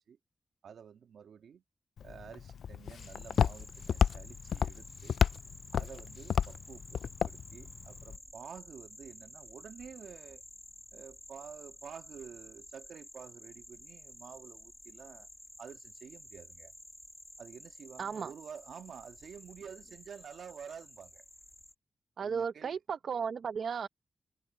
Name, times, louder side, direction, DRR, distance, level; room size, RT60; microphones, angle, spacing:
voice 1, 0.6-1.6 2.0-5.2 5.7-10.4 10.9-15.3 15.6-16.7 17.4-21.3 22.2-22.8, right 7 dB, 85° right, 1.9 m, -50 dB
Walk footsteps, 2.0-8.2, left 8 dB, 85° left, 0.3 m, -32 dB
sound 1, 3.0-21.7, left 1 dB, 10° left, 1.5 m, -53 dB
voice 2, 18.0-18.3 22.2-23.9, right 6 dB, 70° right, 0.8 m, -35 dB
wide cardioid pair, 105°, 0 cm